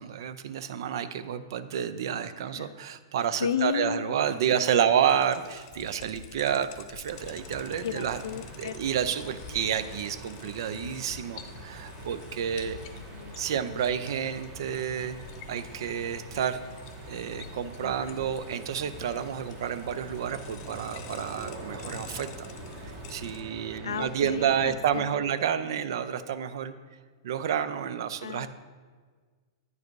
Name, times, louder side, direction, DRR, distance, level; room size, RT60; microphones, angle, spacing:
voice 1, 0.0-8.2 8.6-12.8 13.4-15.2 15.5-16.6 17.1-22.5 22.8-26.7 27.2-28.5, right 8 dB, 70° right, 13 dB, 0.5 m, -30 dB
voice 2, 3.4-4.2 4.7-4.9 7.8-8.8 10.7-11.0 12.9-13.9 17.8-18.3 23.8-25.2 28.2-28.5, left 8 dB, 85° left, 15 dB, 0.3 m, -34 dB
sound 1, 5.1-23.4, left 8 dB, 50° left, 0.7 m, -48 dB
sound 2, 7.1-24.7, right 2 dB, 45° right, 1.8 m, -44 dB
9.7 x 4.8 x 4.6 m, 1.5 s
hypercardioid pair, 130°, 2 cm